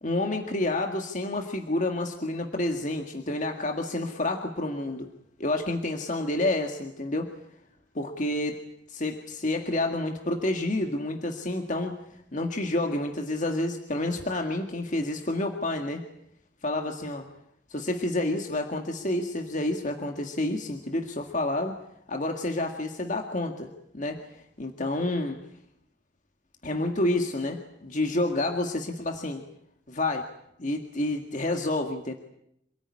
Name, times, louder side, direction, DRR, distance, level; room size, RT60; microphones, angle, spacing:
voice 1, 0.0-5.1 5.4-7.3 8.0-8.6 8.9-12.0 12.3-16.0 16.6-17.3 17.7-21.8 22.1-25.4 26.6-29.4 29.9-30.3 30.6-32.1, left 2 dB, 45° left, 3 dB, 1.9 m, -29 dB
27.5 x 19.0 x 9.8 m, 0.77 s
head